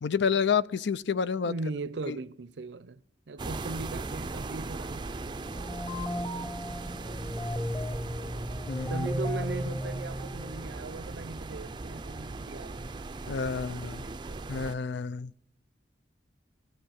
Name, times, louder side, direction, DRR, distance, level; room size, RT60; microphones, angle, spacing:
voice 1, 0.0-1.5 2.1-2.2 8.7-9.1 13.3-14.0 14.5-15.3, left 6 dB, 75° left, 0.5 m, -29 dB
voice 2, 1.4-3.0 3.3-5.0 8.9-12.8 13.2-14.6, right 3 dB, 80° right, 0.6 m, -39 dB
sound 1, 3.4-14.8, right 3 dB, 25° right, 0.4 m, -39 dB
sound 2, 5.4-10.9, equal, 20° left, 1.2 m, -35 dB
sound 3, 6.7-13.6, equal, 45° left, 3.5 m, -55 dB
16.0 x 8.2 x 6.4 m
head